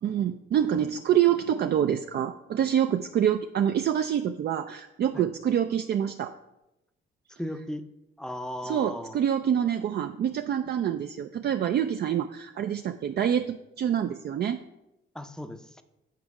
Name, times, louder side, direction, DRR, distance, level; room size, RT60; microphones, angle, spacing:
voice 1, 0.0-6.3 8.6-14.6, right 9 dB, 55° right, 6 dB, 0.4 m, -26 dB
voice 2, 7.4-7.8 8.2-9.2 15.1-15.8, left 1 dB, 5° left, 8 dB, 0.5 m, -36 dB
8.3 x 4.5 x 4.8 m, 0.92 s
cardioid pair, 100°, 21 cm